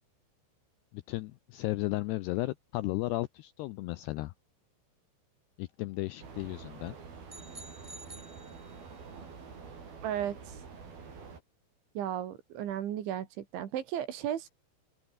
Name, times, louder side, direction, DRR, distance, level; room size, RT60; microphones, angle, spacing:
voice 1, 0.9-4.3 5.6-7.0, left 18 dB, 85° left, 2.4 m, -34 dB
sound 1, 6.2-11.4, right 5 dB, 50° right, 7.1 m, -47 dB
sound 2, 7.3-9.1, right 2 dB, 10° right, 1.6 m, -50 dB
voice 2, 10.0-10.6 12.0-14.5, right 10 dB, 70° right, 4.6 m, -35 dB
open air
omnidirectional pair, 5.7 m